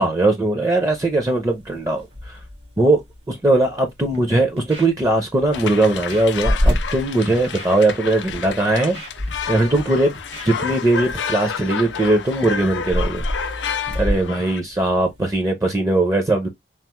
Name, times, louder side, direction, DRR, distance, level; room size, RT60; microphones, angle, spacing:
voice 1, 0.0-2.4 2.8-3.0 3.3-9.0 9.5-10.1 10.4-13.2 13.9-16.5, right 2 dB, 20° right, 0.5 m, -19 dB
sound 1, 0.7-15.4, left 1 dB, 85° right, 1.7 m, -30 dB
Scratching (performance technique), 3.9-4.2 4.6-5.1 5.4-5.6 6.0-6.3 6.8-7.0 7.4-7.9 8.2-8.4 8.7-9.8 10.1-10.7 11.0-11.2, right 1 dB, 70° right, 1.3 m, -38 dB
sound 2, 5.5-14.6, left 7 dB, 85° left, 0.4 m, -30 dB
3.2 x 2.0 x 2.9 m
head